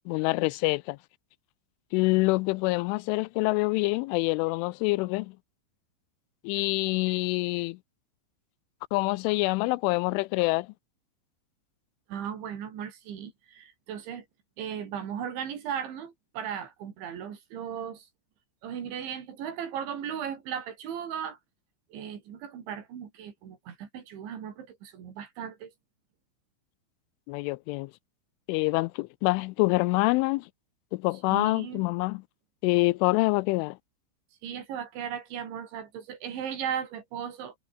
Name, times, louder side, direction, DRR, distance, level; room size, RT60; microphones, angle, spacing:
voice 1, 0.1-1.0 1.9-5.3 6.4-7.8 8.9-10.7 27.3-27.9 28.5-30.5 30.9-32.2 32.6-33.8, left 23 dB, 85° left, 3.0 m, -26 dB
voice 2, 12.1-14.3 14.6-18.1 18.6-21.4 21.9-25.7 31.3-31.9 34.4-37.6, right 8 dB, 70° right, 5.6 m, -36 dB
omnidirectional pair, 5.6 m